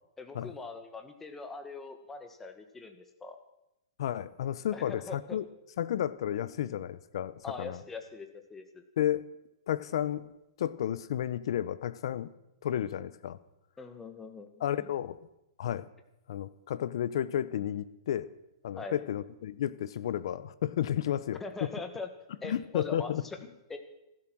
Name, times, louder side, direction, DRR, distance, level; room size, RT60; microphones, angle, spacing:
voice 1, 0.2-3.4 4.7-5.4 7.4-8.8 13.8-14.5 14.8-14.9 18.8-19.0 21.4-22.1 22.4-23.1 23.4-23.8, left 3 dB, 10° left, 6 dB, 1.6 m, -42 dB
voice 2, 4.0-5.4 5.8-7.8 9.0-9.2 9.7-12.3 12.6-13.4 14.6-15.2 15.6-15.9 16.3-18.3 18.6-21.8 22.4-23.2, left 11 dB, 65° left, 15 dB, 0.9 m, -32 dB
15.5 x 12.5 x 6.3 m, 0.91 s
hypercardioid pair, 155°, 3 cm